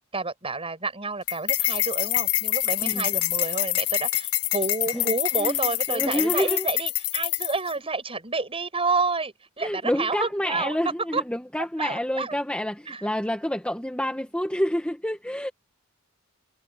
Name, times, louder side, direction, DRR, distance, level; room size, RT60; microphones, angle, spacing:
voice 1, 0.1-10.8 11.1-11.2 11.8-12.3 12.9-13.0, right 3 dB, 25° right, 7.6 m, -29 dB
sound 1, 1.3-7.7, left 16 dB, 90° left, 0.9 m, -26 dB
voice 2, 5.4-6.7 9.6-15.5, equal, 5° left, 1.7 m, -28 dB
head